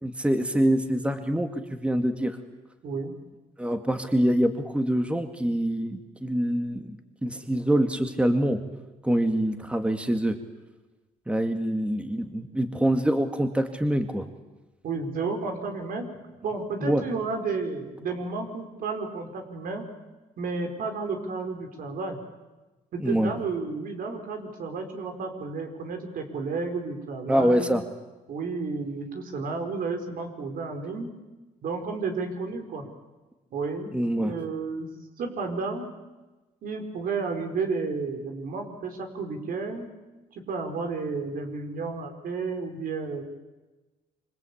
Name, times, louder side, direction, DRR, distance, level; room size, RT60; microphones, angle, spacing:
voice 1, 0.0-2.4 3.6-8.6 9.0-10.4 11.3-14.2 16.8-17.0 23.0-23.3 27.3-27.8 33.9-34.3, right 1 dB, 5° right, 7 dB, 2.2 m, -25 dB
voice 2, 2.8-3.1 14.8-16.1 16.4-19.9 20.4-22.2 22.9-27.7 28.3-31.1 31.6-32.9 33.5-33.9 34.2-34.9 35.2-35.9 36.6-39.9 40.3-43.2, right 4 dB, 70° right, 5 dB, 5.1 m, -32 dB
27.0 x 25.0 x 8.7 m, 1.2 s
cardioid pair, 90°, 15 cm